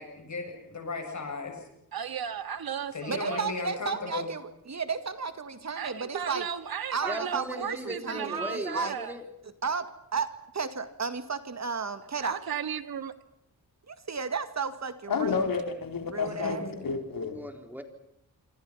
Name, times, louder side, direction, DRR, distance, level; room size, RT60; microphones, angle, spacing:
voice 1, 0.0-1.6 2.9-4.3 16.2-16.9, left 3 dB, 50° left, 4 dB, 7.6 m, -36 dB
voice 2, 1.9-3.5 5.8-9.2 12.2-13.1, right 7 dB, 85° right, 10 dB, 1.9 m, -35 dB
voice 3, 3.1-6.4 6.9-9.0 9.6-9.9 10.1-12.4 13.9-15.5 16.1-16.6, right 5 dB, 50° right, 10 dB, 2.1 m, -33 dB
voice 4, 7.0-9.3 17.3-17.8, equal, 5° right, 6 dB, 3.6 m, -37 dB
voice 5, 15.1-17.4, left 5 dB, 70° left, 6 dB, 4.1 m, -30 dB
27.0 x 26.0 x 5.8 m, 0.78 s
wide cardioid pair, 110°, 35 cm